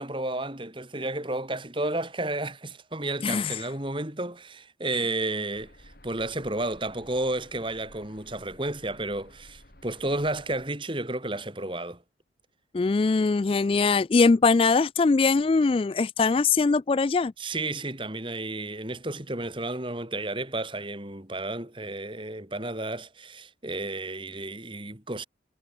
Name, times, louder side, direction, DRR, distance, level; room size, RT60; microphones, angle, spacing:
voice 1, 0.0-12.0 17.4-25.2, right 2 dB, 25° right, 2.9 m, -32 dB
voice 2, 3.2-3.6 12.7-17.3, left 4 dB, 30° left, 0.3 m, -22 dB
sound 1, 5.5-10.7, left 1 dB, 55° left, 4.7 m, -54 dB
head